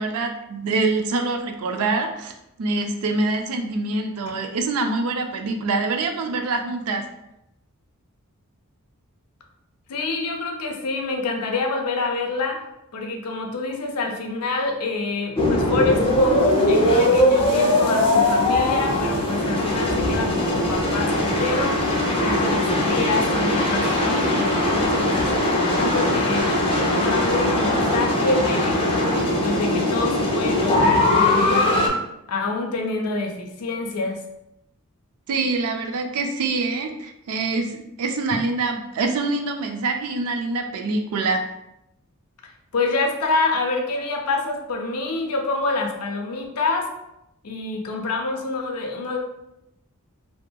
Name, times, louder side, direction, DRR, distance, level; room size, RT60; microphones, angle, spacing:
voice 1, 0.0-2.3 2.6-7.0 35.3-41.4, right 3 dB, 70° right, 5 dB, 0.4 m, -25 dB
voice 2, 9.9-12.6 12.9-21.9 22.2-25.2 25.7-28.8 29.4-31.8 32.3-34.2 42.7-46.9 47.4-49.2, left 3 dB, 90° left, 2 dB, 0.5 m, -26 dB
sound 1, 15.4-31.9, left 1 dB, 25° left, 0.4 m, -20 dB
2.7 x 2.4 x 2.2 m, 0.84 s
head